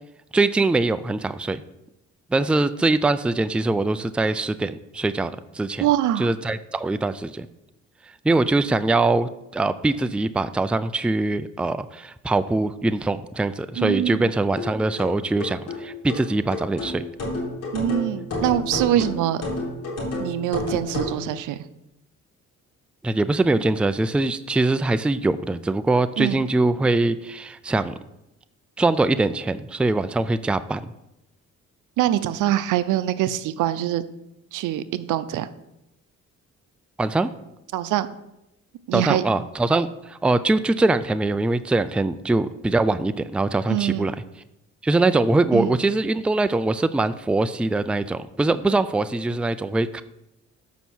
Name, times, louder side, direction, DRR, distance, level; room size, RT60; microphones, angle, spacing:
voice 1, 0.3-1.6 2.3-5.9 6.2-7.5 8.2-17.0 23.0-27.9 28.8-30.9 37.0-37.3 38.9-44.1 44.8-50.0, right 2 dB, 5° right, 13 dB, 0.3 m, -22 dB
voice 2, 5.8-6.3 13.8-14.3 17.7-19.4 20.2-21.6 26.2-26.4 32.0-34.0 34.5-35.5 37.7-38.1 38.9-39.2 43.7-44.1 45.5-45.8, right 12 dB, 85° right, 14 dB, 0.6 m, -24 dB
sound 1, 14.6-21.2, left 2 dB, 55° left, 3.6 m, -30 dB
7.2 x 5.6 x 6.2 m, 0.88 s
cardioid pair, 90°, 30 cm